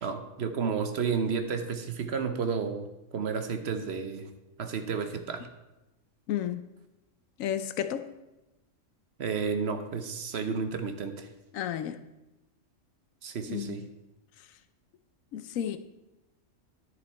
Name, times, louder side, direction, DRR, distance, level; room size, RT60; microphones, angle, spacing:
voice 1, 0.0-2.9 3.1-4.3 4.6-5.5 9.2-11.3 13.2-13.8, right 5 dB, 60° right, 0.9 m, -31 dB
voice 2, 6.3-6.6 7.4-8.1 11.5-12.0 13.5-13.9 15.3-15.8, left 10 dB, 80° left, 1.0 m, -32 dB
10.5 x 6.7 x 4.2 m
omnidirectional pair, 1.4 m